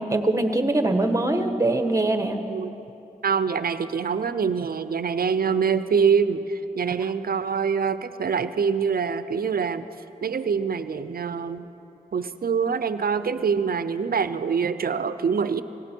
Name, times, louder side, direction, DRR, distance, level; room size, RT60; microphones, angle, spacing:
voice 1, 0.0-2.5, right 2 dB, 20° right, 6 dB, 1.3 m, -23 dB
voice 2, 3.2-9.9 10.2-11.7 12.1-15.6, right 6 dB, 70° right, 13 dB, 0.6 m, -25 dB
17.5 x 17.0 x 4.5 m, 3.0 s
cardioid pair, 55°, 16 cm